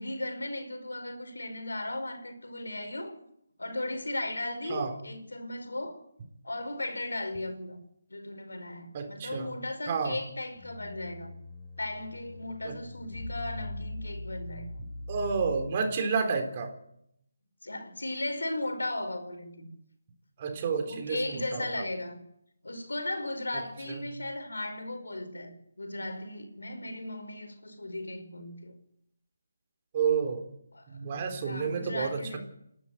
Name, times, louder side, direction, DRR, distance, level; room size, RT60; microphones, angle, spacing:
voice 1, 0.0-3.2 3.6-6.0 6.4-7.8 8.1-11.3 11.8-14.8 17.6-19.8 20.8-22.2 22.6-28.8 30.7-30.8 31.4-32.4, left 1 dB, 85° left, 5.1 m, -36 dB
voice 2, 8.9-9.6 9.9-10.2 12.6-12.7 15.1-16.7 20.4-21.7 23.5-23.6 23.9-24.1 29.9-30.4 30.9-32.4, right 5 dB, 30° right, 3.9 m, -30 dB
sound 1, 10.6-16.0, left 1 dB, 35° left, 5.5 m, -41 dB
28.5 x 12.0 x 8.0 m
figure-of-eight pair, 160°, 0 cm